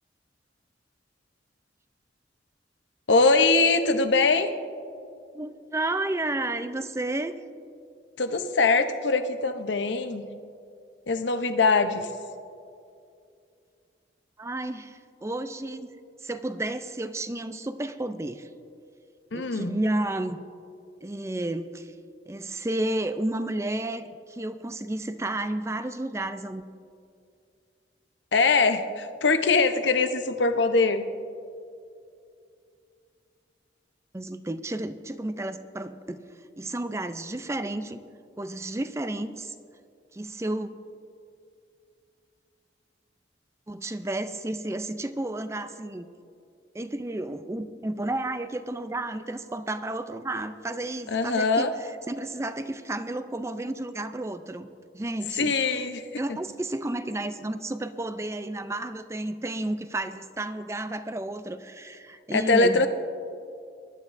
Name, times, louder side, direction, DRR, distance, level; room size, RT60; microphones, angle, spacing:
voice 1, 3.1-4.5 8.2-10.2 11.1-12.1 19.3-19.8 28.3-31.1 51.1-51.7 55.4-56.2 62.3-62.9, left 3 dB, 75° left, 8 dB, 0.8 m, -22 dB
voice 2, 5.3-7.3 14.4-15.9 16.2-18.5 19.3-20.4 21.0-21.9 22.3-26.6 34.1-36.2 36.6-38.0 38.4-39.5 40.1-40.7 43.7-46.1 46.7-54.7 54.9-55.9 56.2-62.9, right 1 dB, 15° right, 11 dB, 0.4 m, -32 dB
22.5 x 11.5 x 2.6 m, 2.5 s
head